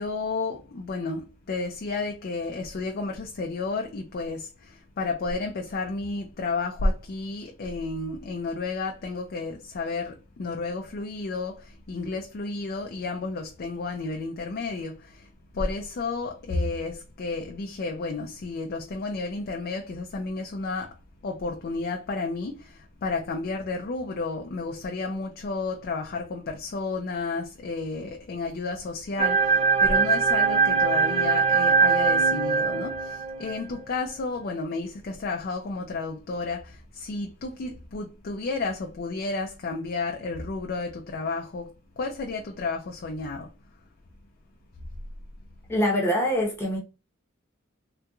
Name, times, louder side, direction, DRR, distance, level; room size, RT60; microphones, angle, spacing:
voice 1, 0.0-21.0 21.2-43.5, left 3 dB, 50° left, 0.4 m, -32 dB
sound 1, 29.2-33.7, right 5 dB, 30° right, 0.4 m, -22 dB
voice 2, 45.7-46.8, equal, 10° left, 0.9 m, -24 dB
3.4 x 2.9 x 2.3 m
head